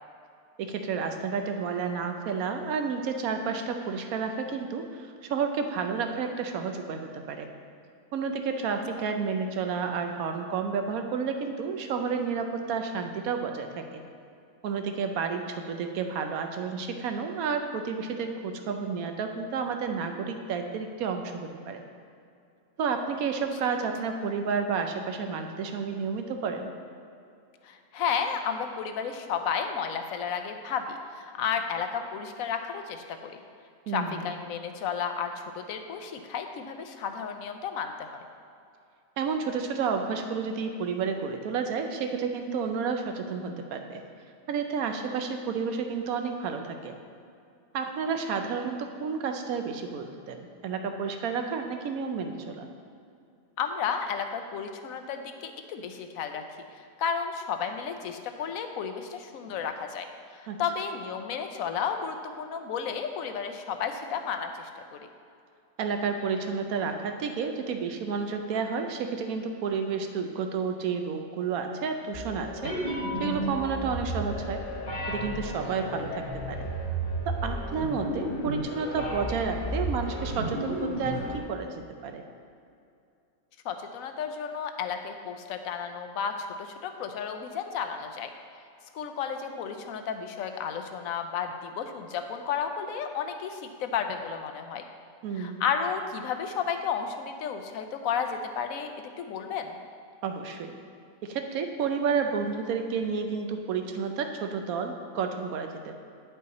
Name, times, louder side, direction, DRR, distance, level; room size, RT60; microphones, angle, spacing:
voice 1, 0.6-7.5 8.1-14.0 14.6-21.8 22.8-26.7 33.9-34.2 39.2-44.0 44.5-47.0 47.7-52.7 60.5-60.6 65.8-72.8 73.2-74.6 75.1-76.7 77.3-82.2 95.2-95.6 100.2-100.7 101.2-106.0, right 5 dB, 90° right, 6 dB, 1.1 m, -31 dB
voice 2, 27.6-33.4 33.9-38.3 53.6-56.4 57.0-60.1 60.4-65.0 75.6-75.8 83.6-88.3 88.9-94.8 95.4-98.9 99.2-99.7, left 7 dB, 75° left, 6 dB, 1.0 m, -32 dB
sound 1, 72.1-81.4, right 1 dB, 40° left, 1.0 m, -33 dB
9.7 x 5.6 x 4.1 m, 2.5 s
omnidirectional pair, 1.5 m